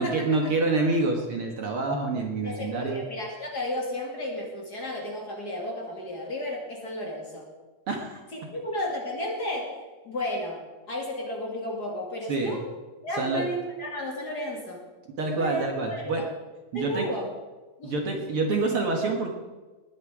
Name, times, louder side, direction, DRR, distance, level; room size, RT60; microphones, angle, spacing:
voice 1, 0.0-3.0 7.9-8.2 12.3-12.6 13.2-13.5 15.2-16.2 16.7-17.1 17.8-19.3, right 3 dB, 55° right, 2 dB, 2.1 m, -27 dB
voice 2, 2.4-7.5 8.3-10.6 10.9-12.7 13.0-14.9 15.3-16.2 16.7-17.3 17.8-17.9, left 1 dB, 35° left, -1 dB, 2.7 m, -33 dB
19.5 x 9.9 x 4.9 m, 1.2 s
omnidirectional pair, 3.4 m